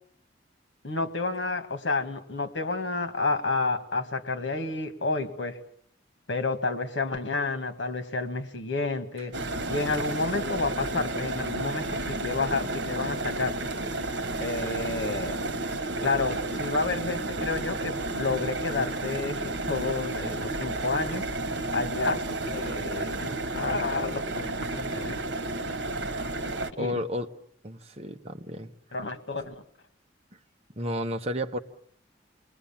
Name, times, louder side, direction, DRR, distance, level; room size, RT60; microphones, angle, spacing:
voice 1, 0.8-5.6 6.3-9.3 9.7-13.6 14.4-15.4 16.0-21.3 21.7-25.2 26.8-27.0 28.9-29.6, left 3 dB, 85° left, 9 dB, 1.9 m, -30 dB
sound 1, 9.3-26.7, right 2 dB, 70° right, 1.4 m, -32 dB
voice 2, 26.8-27.3 27.6-28.7 30.8-31.6, equal, 35° right, 4 dB, 1.2 m, -32 dB
28.5 x 21.0 x 7.3 m, 0.65 s
head